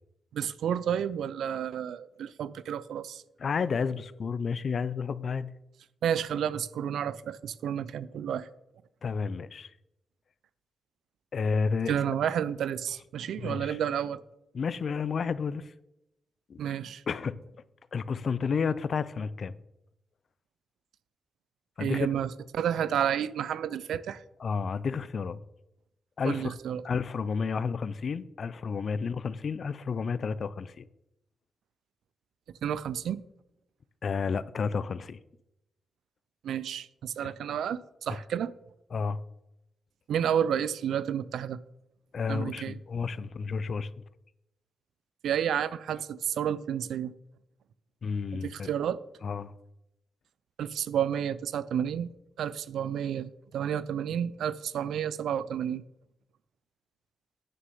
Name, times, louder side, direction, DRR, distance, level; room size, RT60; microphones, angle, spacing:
voice 1, 0.3-3.2 6.0-8.5 11.9-14.2 16.6-17.0 21.8-24.2 26.2-26.8 32.6-33.2 36.4-38.5 40.1-41.6 42.3-42.8 45.2-47.1 48.3-49.0 50.6-52.1 52.4-55.8, right 9 dB, 85° right, 0.4 m, -31 dB
voice 2, 3.4-5.5 9.0-9.7 11.3-12.0 13.4-13.8 14.5-15.7 16.5-16.6 17.1-17.3 17.9-19.5 21.8-22.1 24.4-25.4 26.2-26.5 26.8-30.9 34.0-35.2 37.2-37.3 38.9-39.2 42.1-43.9 48.0-48.7 49.2-49.5, left 5 dB, 60° left, 0.5 m, -31 dB
9.3 x 6.5 x 5.4 m
cardioid pair, 75°, 0 cm